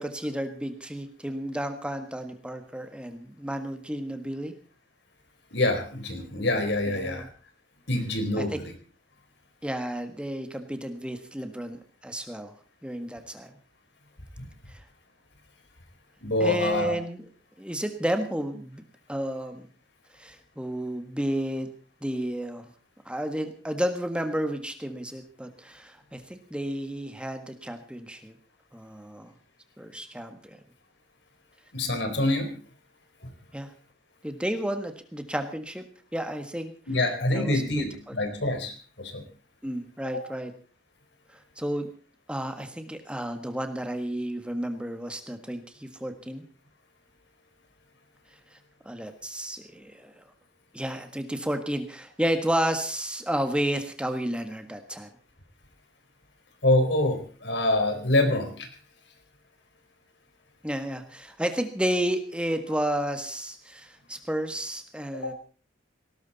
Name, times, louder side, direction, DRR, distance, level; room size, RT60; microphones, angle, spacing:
voice 1, 0.0-4.5 6.9-7.3 8.4-8.6 9.6-12.5 12.8-13.5 14.7-14.8 16.4-17.2 17.6-18.8 19.1-19.6 20.2-21.7 22.0-22.6 23.0-28.3 28.7-29.3 29.8-30.6 33.5-33.7 34.2-35.8 36.1-36.7 37.3-38.1 39.6-40.5 41.6-41.9 42.3-46.4 48.8-50.2 50.7-55.1 60.6-65.3, right 1 dB, 5° right, 6 dB, 1.6 m, -31 dB
voice 2, 5.5-7.3 7.9-8.7 16.2-17.0 31.7-32.5 36.9-39.2 40.1-40.2 56.6-58.7 65.2-65.3, left 1 dB, 65° left, 7 dB, 4.1 m, -26 dB
19.0 x 18.5 x 4.1 m, 0.39 s
head